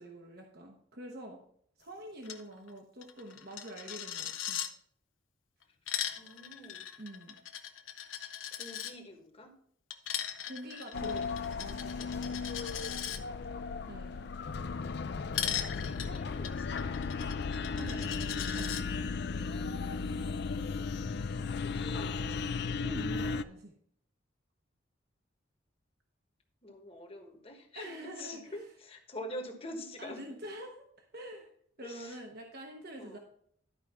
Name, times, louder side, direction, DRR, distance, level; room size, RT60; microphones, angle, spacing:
voice 1, 0.0-1.4 1.8-4.6 7.0-7.3 10.5-12.1 13.9-14.3 17.8-19.0 22.8-23.7 27.7-28.7 30.0-31.5 31.8-33.2, right 1 dB, 50° right, 1 dB, 1.1 m, -46 dB
Coin (dropping), 2.2-2.4 2.7-2.8 3.0-4.7 5.6-8.9 9.9-13.2 15.3-18.8, left 10 dB, 80° left, 0.9 m, -39 dB
voice 2, 6.2-6.9 8.6-9.5 15.7-17.0 21.6-22.4 26.6-30.2 31.8-32.2 33.0-33.2, left 1 dB, 30° left, 3 dB, 1.3 m, -46 dB
sound 1, 10.9-23.4, left 4 dB, 55° left, 0.4 m, -35 dB
12.0 x 5.1 x 4.3 m, 0.63 s
head